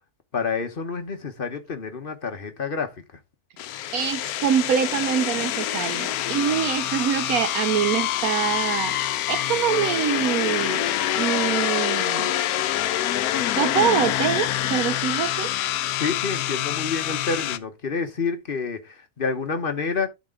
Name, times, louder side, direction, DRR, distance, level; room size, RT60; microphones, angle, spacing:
voice 1, 0.3-2.9 16.0-20.1, left 5 dB, 40° left, 1.1 m, -28 dB
sound 1, 3.6-17.6, left 12 dB, 75° left, 1.1 m, -26 dB
voice 2, 3.9-9.0 9.3-10.9 11.1-12.4 13.6-15.5, right 9 dB, 70° right, 1.1 m, -25 dB
11.5 x 4.2 x 3.7 m
omnidirectional pair, 1.6 m